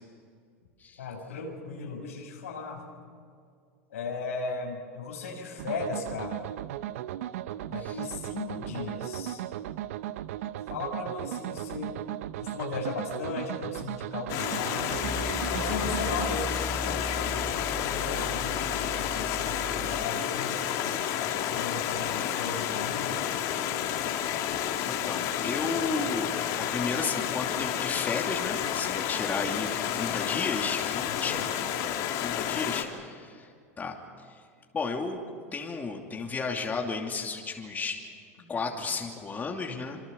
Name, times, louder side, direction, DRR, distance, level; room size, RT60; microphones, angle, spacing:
voice 1, 1.0-2.9 3.9-6.5 7.7-9.4 10.7-12.0 12.4-15.0 15.5-20.5 21.5-23.2 31.1-31.5 38.4-38.6, left 4 dB, 90° left, 1 dB, 5.9 m, -37 dB
sound 1, 5.6-16.4, right 12 dB, 75° right, 0.8 m, -36 dB
Stream, 14.3-32.8, left 10 dB, 60° left, 2.6 m, -30 dB
sound 2, 15.0-20.0, equal, ahead, 0.6 m, -38 dB
voice 2, 24.9-26.3 26.6-31.4 32.2-33.5 33.8-33.9 34.7-35.2 35.5-38.0 38.5-40.0, left 4 dB, 25° left, 1 dB, 2.8 m, -33 dB
27.0 x 24.5 x 7.1 m, 2.2 s
hypercardioid pair, 100°, 8 cm